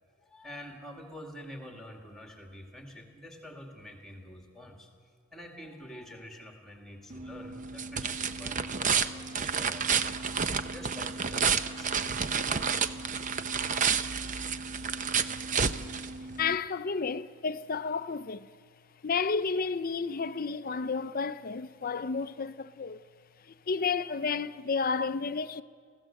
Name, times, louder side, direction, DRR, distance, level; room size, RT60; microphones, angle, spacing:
voice 1, 0.2-4.9 5.3-10.0 10.6-11.9, left 1 dB, ahead, 2.1 m, -47 dB
sound 1, 7.1-16.6, right 6 dB, 35° right, 0.6 m, -30 dB
voice 2, 16.4-18.5 19.0-23.0 23.4-25.6, left 5 dB, 40° left, 0.5 m, -31 dB
24.0 x 16.0 x 7.7 m
head